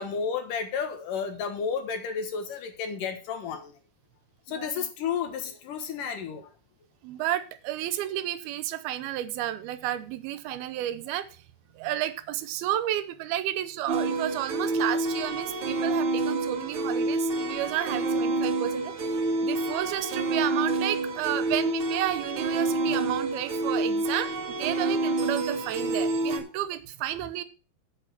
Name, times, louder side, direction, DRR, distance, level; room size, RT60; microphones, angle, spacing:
voice 1, 0.0-3.7 4.5-6.5, left 6 dB, 65° left, 7 dB, 2.8 m, -32 dB
voice 2, 7.0-11.3 11.8-18.9 19.4-27.4, right 13 dB, 90° right, 14 dB, 2.8 m, -31 dB
sound 1, 13.9-26.4, right 2 dB, 45° right, 1.8 m, -28 dB
8.5 x 8.2 x 5.9 m, 0.35 s
omnidirectional pair, 4.3 m